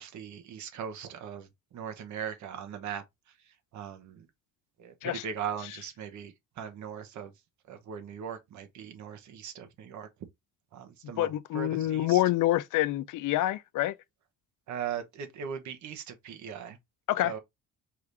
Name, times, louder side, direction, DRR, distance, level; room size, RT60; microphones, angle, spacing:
voice 1, 0.0-1.5 1.7-3.0 3.7-4.3 4.8-7.3 7.7-10.1 10.7-12.2 14.7-16.8 17.2-17.4, right 8 dB, 50° right, 0.9 m, -39 dB
voice 2, 11.2-13.9 17.1-17.3, left 14 dB, 60° left, 0.5 m, -27 dB
4.8 x 2.6 x 3.4 m
cardioid pair, 145°, 36 cm